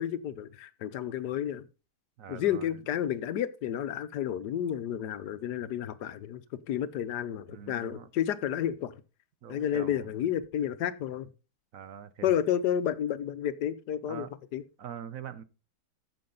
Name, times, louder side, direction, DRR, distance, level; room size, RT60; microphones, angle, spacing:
voice 1, 0.0-1.6 2.3-6.4 6.7-9.0 9.5-11.3 12.2-14.6, left 10 dB, 75° left, 1.3 m, -31 dB
voice 2, 2.2-2.7 7.5-8.1 9.4-10.0 11.7-12.3 14.1-14.3 14.8-15.4, right 9 dB, 60° right, 1.0 m, -43 dB
14.0 x 6.8 x 3.8 m
omnidirectional pair, 1.8 m